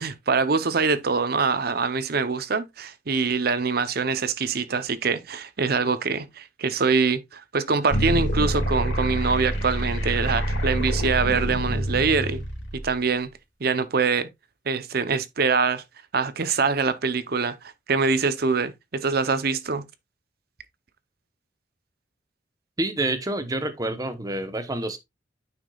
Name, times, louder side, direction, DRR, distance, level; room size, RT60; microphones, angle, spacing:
voice 1, 0.0-12.4 12.7-13.3 13.6-14.3 14.7-15.8 16.1-19.8, right 4 dB, 55° right, 0.7 m, -24 dB
sound 1, 7.9-12.9, equal, 80° left, 3.2 m, -26 dB
voice 2, 22.8-25.0, right 1 dB, 20° right, 1.0 m, -28 dB
9.2 x 5.9 x 2.4 m
head